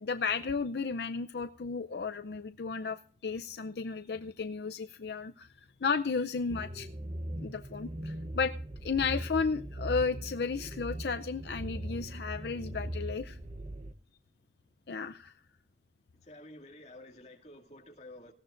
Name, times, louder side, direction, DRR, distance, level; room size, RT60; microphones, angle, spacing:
voice 1, 0.0-5.5 5.8-6.9 7.4-8.5 8.8-13.4 14.9-15.3, left 5 dB, 65° left, 9 dB, 0.5 m, -33 dB
sound 1, 6.5-13.9, right 1 dB, 35° right, 0.8 m, -40 dB
voice 2, 16.2-18.3, left 1 dB, 40° left, 2 dB, 2.3 m, -50 dB
18.5 x 16.5 x 2.5 m, 0.42 s
head